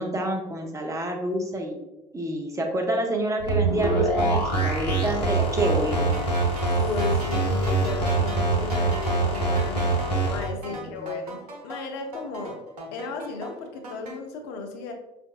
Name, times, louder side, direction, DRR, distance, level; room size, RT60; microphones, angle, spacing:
voice 1, 0.0-1.8 2.1-6.1 10.7-11.1, right 1 dB, 15° right, 1 dB, 0.7 m, -28 dB
sound 1, 3.4-10.4, right 2 dB, 80° left, 0.8 m, -24 dB
sound 2, 5.6-8.7, right 2 dB, 35° left, 1.3 m, -35 dB
sound 3, 5.6-14.2, right 2 dB, 75° right, 0.9 m, -41 dB
voice 2, 6.8-9.9 10.3-12.6 12.9-14.9, left 4 dB, 55° left, 4 dB, 0.6 m, -35 dB
5.7 x 2.5 x 2.4 m, 0.97 s
figure-of-eight pair, 60°, 21 cm